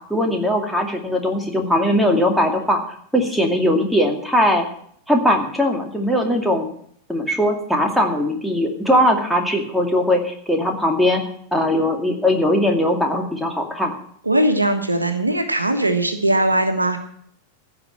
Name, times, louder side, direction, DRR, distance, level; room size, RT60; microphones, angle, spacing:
voice 1, 0.0-2.8 3.1-4.7 5.1-6.7 7.1-11.2 11.5-13.9, left 1 dB, ahead, 1 dB, 2.3 m, -20 dB
voice 2, 14.2-17.0, right 1 dB, 80° right, 7 dB, 1.4 m, -19 dB
15.5 x 5.5 x 9.4 m, 0.65 s
figure-of-eight pair, 90°, 0 cm